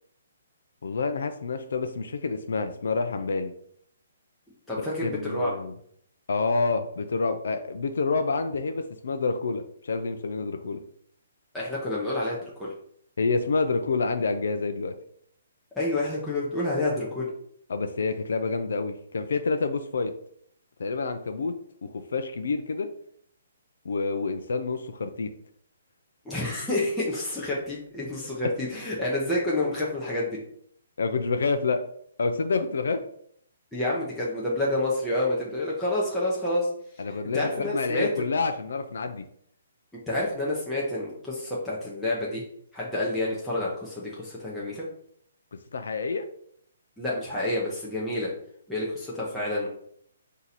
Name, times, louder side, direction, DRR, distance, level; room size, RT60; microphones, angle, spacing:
voice 1, 0.8-3.5 4.8-5.7 6.3-10.8 13.2-14.9 17.7-20.1 20.8-21.6 21.8-22.9 23.8-25.3 31.0-31.8 32.2-33.0 37.0-39.3 45.7-46.3, left 4 dB, 70° left, 7 dB, 0.5 m, -28 dB
voice 2, 4.7-5.5 11.5-12.7 15.8-17.3 26.2-30.4 33.7-36.7 37.3-38.1 40.1-42.4 42.7-44.9 47.0-48.3 48.7-49.7, left 1 dB, 5° left, -8 dB, 0.7 m, -28 dB
4.6 x 2.7 x 4.0 m, 0.66 s
hypercardioid pair, 170°, 0 cm